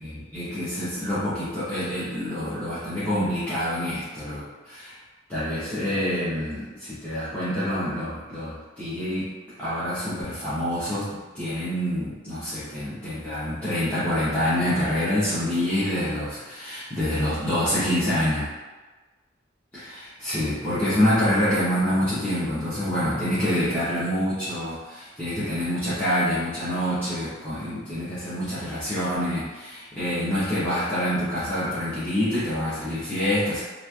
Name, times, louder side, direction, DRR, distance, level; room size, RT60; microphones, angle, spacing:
voice 1, 0.0-5.0 5.3-9.3 9.6-18.5 19.7-33.6, equal, 10° left, -15 dB, 0.7 m, -26 dB
3.0 x 2.4 x 2.2 m, 1.3 s
head